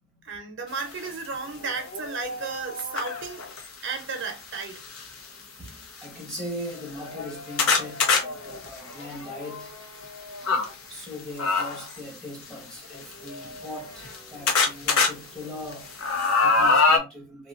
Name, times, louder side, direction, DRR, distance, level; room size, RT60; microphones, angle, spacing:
voice 1, 0.2-3.4 3.8-4.8, right 4 dB, 60° right, 0.7 m, -34 dB
sound 1, 1.0-1.1 1.7-3.7 4.6-5.0 5.7-5.8 6.0-6.1 6.7-10.7 11.4-12.0 12.9-14.2 14.5-15.1 15.5-17.0, left 4 dB, 80° left, 0.8 m, -25 dB
voice 2, 5.6-9.8 10.9-17.5, left 1 dB, 5° left, 1.1 m, -40 dB
3.2 x 2.4 x 2.5 m
head